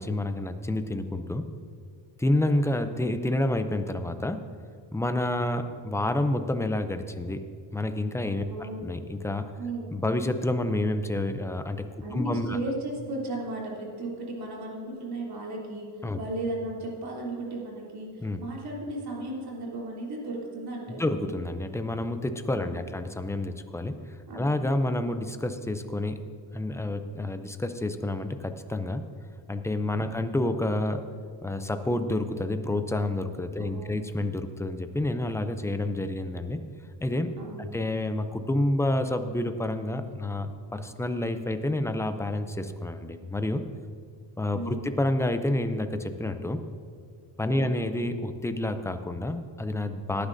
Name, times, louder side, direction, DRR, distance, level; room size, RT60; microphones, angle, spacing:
voice 1, 0.0-1.4 2.2-4.4 4.9-7.4 7.7-9.4 9.9-11.8 12.1-12.6 16.0-16.2 18.2-18.4 20.9-23.9 24.3-26.2 26.5-29.0 29.5-31.0 31.4-36.6 37.0-43.6 44.4-46.6 47.4-50.3, left 1 dB, 5° left, 8 dB, 0.3 m, -29 dB
voice 2, 8.5-8.9 9.6-9.9 12.0-15.9 16.1-21.2 22.6-22.8 24.3-24.5 30.0-30.2 33.6-34.0 37.4-37.7 44.5-44.9 47.5-47.9, right 2 dB, 50° right, -3 dB, 3.1 m, -35 dB
18.5 x 9.9 x 2.6 m, 2.3 s
cardioid pair, 155°, 45 cm